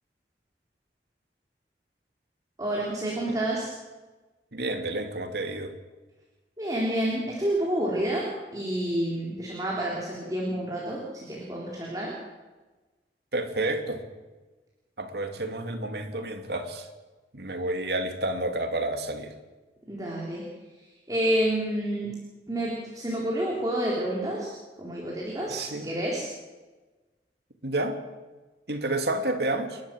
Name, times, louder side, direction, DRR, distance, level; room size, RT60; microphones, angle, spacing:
voice 1, 2.6-3.7 6.6-11.0 11.3-12.1 19.9-20.4 21.1-22.1 22.5-24.5 24.8-26.2, right 1 dB, 20° right, -4 dB, 3.8 m, -29 dB
voice 2, 4.5-5.7 13.3-14.0 15.0-16.9 17.3-19.3 25.5-25.9 27.6-28.0 28.7-29.8, right 2 dB, 65° right, 5 dB, 2.6 m, -30 dB
29.5 x 12.0 x 7.7 m, 1.2 s
head